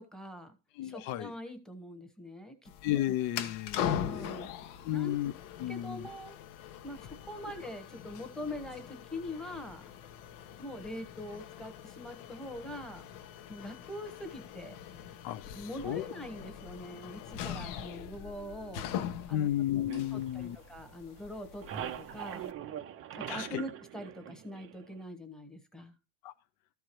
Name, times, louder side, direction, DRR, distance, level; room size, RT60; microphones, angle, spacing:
voice 1, 0.0-0.6 0.8-2.7 4.0-4.5 4.9-5.1 5.7-6.4 6.8-9.8 10.6-13.1 13.5-14.7 15.5-18.9 19.3-19.5 19.8-22.5 23.1-25.9, left 1 dB, ahead, 1.1 m, -43 dB
voice 2, 0.7-1.3 2.8-4.2 4.8-5.3 5.6-6.1 15.2-16.1 19.3-20.6 23.3-23.6 26.2-26.3, left 13 dB, 45° left, 0.5 m, -33 dB
sound 1, 2.6-22.5, left 9 dB, 75° left, 1.2 m, -42 dB
sound 2, 19.9-21.0 21.3-25.0, right 10 dB, 30° right, 0.5 m, -42 dB
13.5 x 4.7 x 4.5 m
cardioid pair, 170°, 49 cm